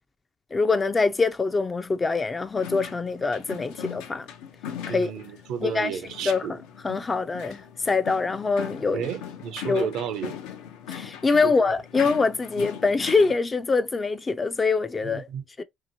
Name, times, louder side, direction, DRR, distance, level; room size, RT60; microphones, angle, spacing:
voice 1, 0.5-4.3 4.9-5.1 5.6-5.9 6.2-6.6 6.8-9.1 9.7-9.9 10.9-15.3 15.6-15.7, left 4 dB, 25° left, 0.3 m, -24 dB
sound 1, 2.6-13.4, left 9 dB, 90° left, 0.5 m, -40 dB
voice 2, 4.9-6.6 8.9-10.3 11.4-11.5 15.0-15.4, right 7 dB, 75° right, 0.5 m, -32 dB
2.8 x 2.7 x 2.6 m
supercardioid pair, 90°, 0 cm